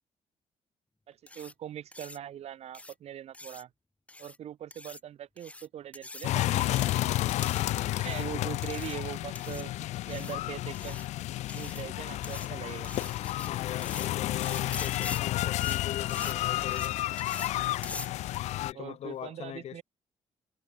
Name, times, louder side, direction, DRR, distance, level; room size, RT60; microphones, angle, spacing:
voice 1, 1.1-3.7 4.2-7.3 8.0-11.0 11.5-12.9 18.7-19.8, right 10 dB, 65° right, 3.6 m, -42 dB
sound 1, 1.3-1.5 1.9-2.2 2.7-2.9 3.3-3.6 4.1-4.4 4.7-5.0 5.4-5.7 5.9-6.3 6.6-7.0 7.3-7.6 8.0-8.3 8.6-8.9 9.3-9.6 10.1-10.3 10.7-11.1 11.5-11.8 12.2-12.5 12.8-13.5 13.8-14.1 14.4-15.2 15.5-15.8 16.1-16.3 16.6-16.9 17.2-17.5 17.8-18.1, left 2 dB, 10° left, 3.6 m, -44 dB
sound 2, 6.2-18.7, left 15 dB, 85° left, 0.4 m, -31 dB
voice 2, 8.3-8.6 13.5-17.0 18.6-19.8, left 11 dB, 65° left, 3.2 m, -41 dB
cardioid pair, 130°, 11 cm